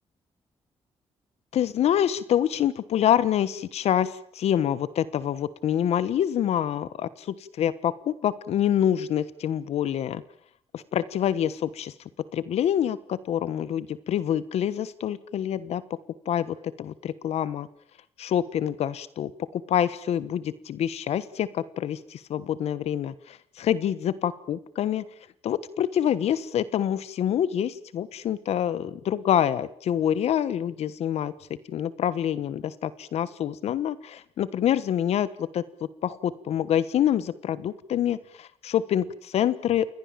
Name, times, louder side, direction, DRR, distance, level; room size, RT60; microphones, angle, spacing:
voice 1, 1.5-10.2 10.7-11.9 12.3-15.8 16.2-16.4 16.8-17.7 18.2-25.0 25.4-31.3 31.7-35.6 36.0-39.9, left 10 dB, 80° left, 16 dB, 1.2 m, -26 dB
29.0 x 22.0 x 7.5 m, 0.62 s
cardioid pair, 115°, 11 cm